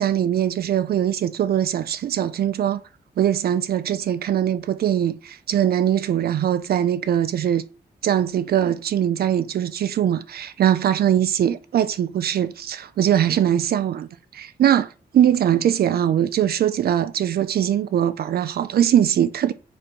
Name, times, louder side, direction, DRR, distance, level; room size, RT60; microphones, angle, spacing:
voice 1, 0.0-2.8 3.2-7.7 8.0-19.5, right 10 dB, 65° right, 0.4 m, -21 dB
7.7 x 4.4 x 4.5 m
wide cardioid pair, 145°, 17 cm